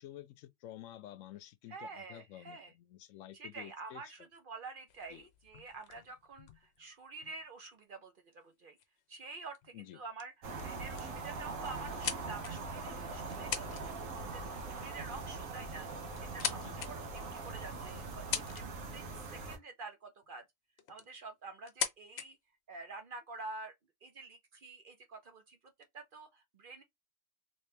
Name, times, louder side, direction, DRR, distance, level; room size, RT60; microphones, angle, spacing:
voice 1, 0.0-4.0 5.1-5.3 9.7-10.0 16.5-16.8, left 13 dB, 85° left, 1.0 m, -51 dB
voice 2, 1.7-2.7 3.3-8.8 9.1-15.9 16.2-20.4 20.9-22.4 22.7-23.7 24.0-25.6 25.9-26.8, right 3 dB, 50° right, 0.7 m, -48 dB
sound 1, 4.9-7.5 8.4-8.5 8.8-9.0 9.6-9.9 10.2-10.3 10.6-11.2 11.6-12.8 13.3-13.8 14.1-14.4 15.5-15.6 16.1-16.9 17.5-17.6 18.1-18.9 20.2-20.3 20.8-21.2 21.6-22.3, left 8 dB, 65° left, 0.8 m, -40 dB
sound 2, 10.4-19.6, right 3 dB, 80° right, 1.2 m, -42 dB
3.1 x 3.0 x 3.2 m
omnidirectional pair, 1.3 m